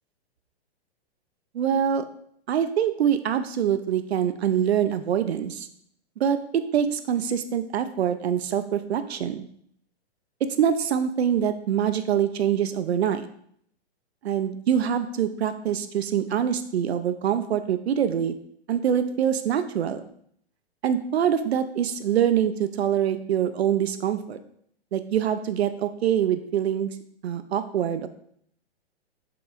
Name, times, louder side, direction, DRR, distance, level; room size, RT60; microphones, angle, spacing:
voice 1, 1.5-2.0 2.5-5.7 6.2-9.4 10.4-13.3 14.2-18.3 18.7-20.0 20.8-24.4 24.9-26.9 27.2-28.1, right 9 dB, 75° right, 10 dB, 0.6 m, -24 dB
6.8 x 6.7 x 2.5 m, 0.67 s
hypercardioid pair, 165°, 32 cm